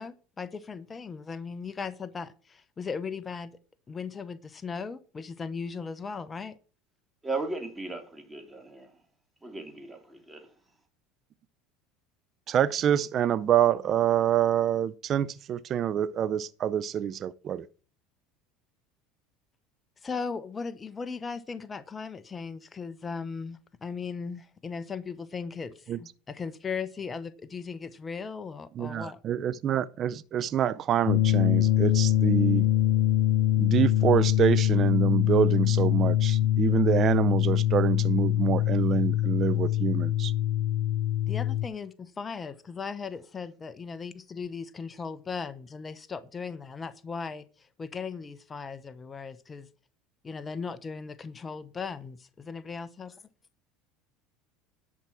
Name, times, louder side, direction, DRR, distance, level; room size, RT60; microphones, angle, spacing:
voice 1, 0.0-3.6 3.9-6.6 20.0-29.2 41.3-49.7 50.2-52.2 52.5-53.2, left 5 dB, 25° left, 0.9 m, -37 dB
voice 2, 7.2-8.9 9.4-10.5, right 3 dB, 10° right, 3.2 m, -36 dB
voice 3, 12.5-17.7 25.9-26.0 28.8-32.7 33.6-40.3, right 9 dB, 45° right, 0.5 m, -26 dB
sound 1, 31.1-41.7, left 12 dB, 80° left, 0.5 m, -24 dB
11.0 x 6.0 x 5.9 m
supercardioid pair, 100°, 0 cm